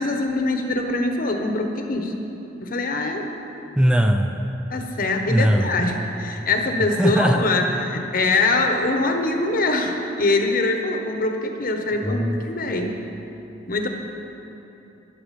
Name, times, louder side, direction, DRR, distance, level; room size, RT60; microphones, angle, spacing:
voice 1, 0.0-2.1 2.6-3.3 4.7-13.0 13.7-13.9, left 2 dB, 50° left, 4 dB, 1.2 m, -23 dB
voice 2, 3.8-4.4 5.3-5.8 7.0-7.5 12.0-12.4, equal, 5° right, 4 dB, 0.5 m, -19 dB
14.0 x 11.0 x 5.3 m, 3.0 s
head